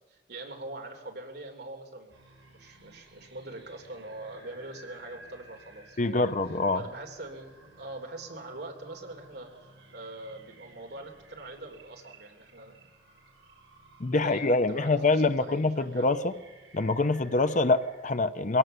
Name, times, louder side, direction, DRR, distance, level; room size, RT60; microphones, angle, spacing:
voice 1, 0.1-2.1 2.5-6.4 6.7-9.5 9.9-12.9 14.1-16.1, right 2 dB, 60° right, 3 dB, 3.4 m, -43 dB
sound 1, 2.1-18.0, right 2 dB, 80° right, 6.4 m, -56 dB
voice 2, 6.0-6.8 14.0-16.3 16.7-18.6, left 3 dB, 40° left, 12 dB, 0.7 m, -25 dB
23.0 x 17.0 x 6.8 m, 1.1 s
head